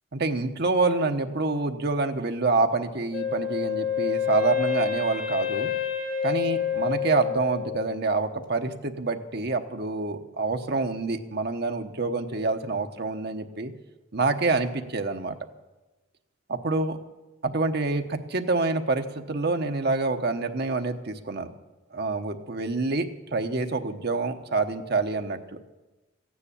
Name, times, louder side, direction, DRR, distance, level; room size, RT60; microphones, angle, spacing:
voice 1, 0.1-5.7 6.2-13.7 14.1-15.4 16.5-17.0 17.4-21.5 21.9-25.6, right 3 dB, 55° right, 6 dB, 1.1 m, -27 dB
Wind instrument woodwind instrument, 3.1-8.0, left 8 dB, 45° left, 1.9 m, -28 dB
15.0 x 9.7 x 8.5 m, 1.1 s
head